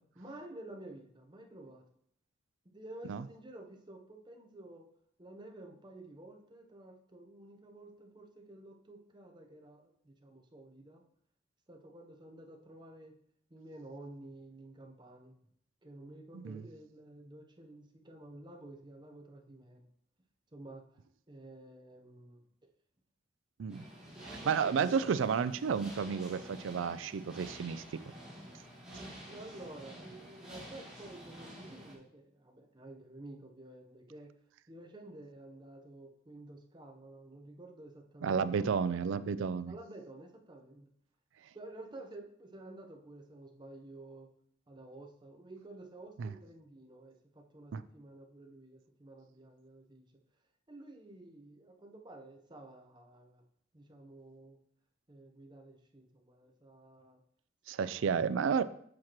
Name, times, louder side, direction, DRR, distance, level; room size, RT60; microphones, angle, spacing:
voice 1, 0.1-1.8 2.7-4.8 5.2-11.0 11.7-13.2 13.5-15.3 15.8-19.8 20.5-20.8 21.3-22.4 23.8-25.1 28.9-34.3 34.7-39.0 39.7-40.9 41.5-44.3 44.7-50.1 50.7-53.4 53.7-54.6 55.1-57.2 57.8-58.6, right 2 dB, 25° right, 2 dB, 0.8 m, -51 dB
sound 1, 23.7-31.9, equal, 5° right, 1.8 m, -49 dB
voice 2, 24.2-27.8 38.2-39.7 46.2-46.3 47.7-47.8 57.7-58.6, right 6 dB, 85° right, 15 dB, 0.4 m, -32 dB
7.4 x 5.9 x 3.0 m, 0.66 s
head